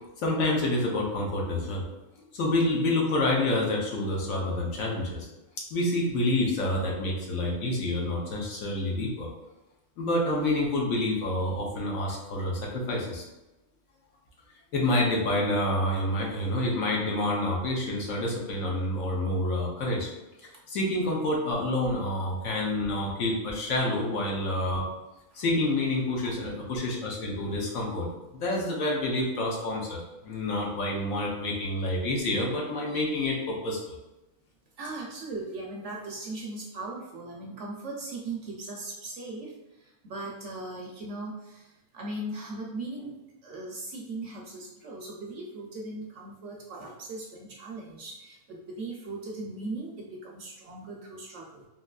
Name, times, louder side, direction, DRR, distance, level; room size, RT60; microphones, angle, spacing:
voice 1, 0.2-1.8 2.3-5.3 5.7-9.3 10.0-13.2 14.7-20.1 20.7-24.8 25.3-33.9, left 1 dB, 70° left, -2 dB, 1.2 m, -28 dB
voice 2, 34.8-39.5 40.0-41.7 41.9-43.1 43.4-51.7, right 2 dB, 65° right, -2 dB, 0.8 m, -38 dB
3.7 x 2.7 x 2.3 m, 1.0 s
omnidirectional pair, 1.5 m